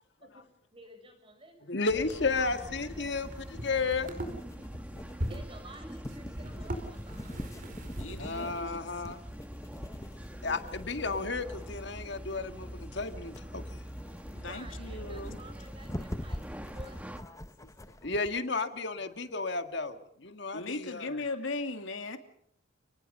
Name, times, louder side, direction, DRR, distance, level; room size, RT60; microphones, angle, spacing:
voice 1, 0.2-1.6 1.9-2.0 2.3-3.2 5.3-7.5 14.2-17.2, right 1 dB, 25° right, 5 dB, 6.6 m, -52 dB
voice 2, 1.7-4.1 8.2-9.2 10.4-13.6 18.0-21.2, left 3 dB, 60° left, 8 dB, 1.8 m, -33 dB
sound 1, 1.9-17.2, equal, 5° right, 1.6 m, -44 dB
sound 2, 2.0-9.2 9.6-11.4 11.7-11.8 15.5-15.6 15.7-15.8 18.3-18.4, equal, 40° right, 4.6 m, -42 dB
sound 3, 2.1-18.4, left 1 dB, 15° left, 1.0 m, -46 dB
voice 3, 8.0-8.9 14.4-15.4 20.5-22.2, left 3 dB, 75° left, 7 dB, 2.7 m, -38 dB
30.0 x 20.0 x 5.5 m, 0.68 s
head